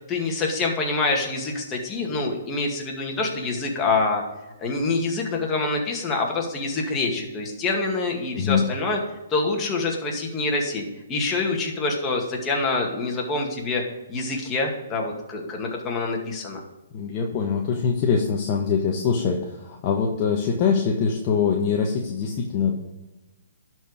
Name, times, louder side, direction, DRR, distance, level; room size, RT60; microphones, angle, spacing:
voice 1, 0.1-4.2 4.6-9.0 9.3-13.8 14.1-16.6, left 3 dB, 20° left, 0 dB, 2.1 m, -26 dB
voice 2, 16.9-22.7, left 6 dB, 35° left, 0 dB, 1.2 m, -23 dB
11.5 x 4.6 x 4.9 m, 1.1 s
hypercardioid pair, 135°, 0 cm